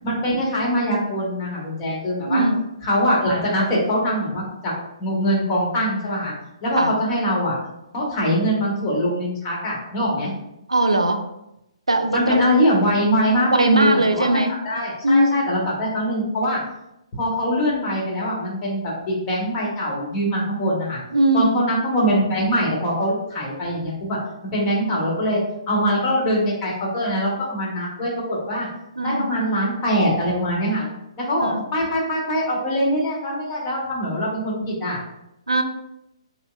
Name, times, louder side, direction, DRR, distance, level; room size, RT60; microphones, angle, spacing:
voice 1, 0.0-2.4 2.8-4.7 5.0-6.3 6.6-7.6 7.9-10.3 12.1-14.4 14.6-16.6 17.2-21.0 21.3-25.4 25.7-28.7 29.0-30.9 31.2-35.0, equal, 25° left, -4 dB, 1.3 m, -23 dB
voice 2, 2.2-2.6 6.7-6.9 10.7-11.2 11.9-12.4 13.5-14.5 15.0-15.4 21.1-21.7 29.0-29.3 31.4-31.6 35.5-35.6, right 1 dB, 80° right, 6 dB, 0.4 m, -20 dB
5.6 x 2.1 x 2.4 m, 0.86 s
figure-of-eight pair, 130°, 3 cm